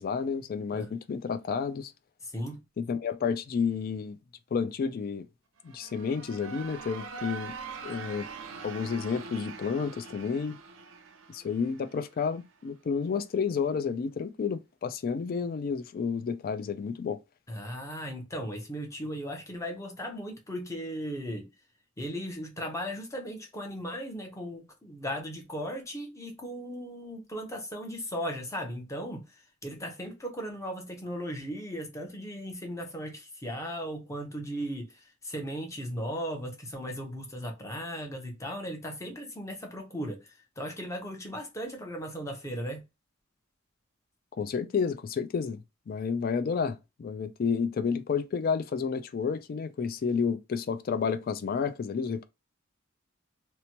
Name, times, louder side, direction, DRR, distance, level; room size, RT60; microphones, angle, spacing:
voice 1, 0.0-1.9 2.8-4.2 4.5-5.3 5.6-7.5 7.8-8.3 8.6-10.6 11.3-17.2 44.3-45.6 45.9-52.3, left 6 dB, 45° left, 0.3 m, -30 dB
sound 1, 5.6-12.4, right 5 dB, 70° right, 0.5 m, -43 dB
voice 2, 17.5-21.5 22.0-29.2 29.6-40.2 40.6-42.8, equal, 15° left, 0.7 m, -37 dB
2.9 x 2.1 x 2.8 m
head